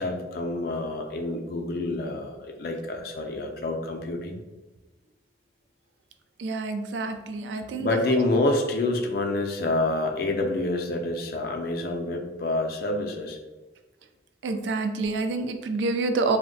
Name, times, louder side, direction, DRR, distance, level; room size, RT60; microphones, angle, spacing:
voice 1, 0.0-4.4 7.8-13.4, left 2 dB, 55° left, 3 dB, 0.4 m, -27 dB
voice 2, 6.4-8.2 14.4-16.4, right 3 dB, 80° right, 7 dB, 0.3 m, -28 dB
2.5 x 2.1 x 3.8 m, 1.2 s
head